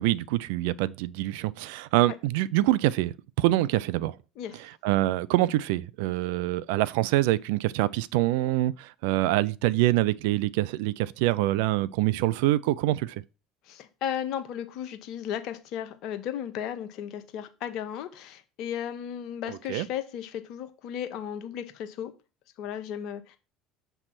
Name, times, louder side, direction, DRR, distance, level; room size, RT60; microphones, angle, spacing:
voice 1, 0.0-4.1 4.8-13.2 19.5-19.9, right 16 dB, 70° right, 0.3 m, -25 dB
voice 2, 13.7-22.1 22.6-23.4, left 9 dB, 60° left, 1.0 m, -35 dB
7.1 x 3.4 x 5.9 m
hypercardioid pair, 70°, 0 cm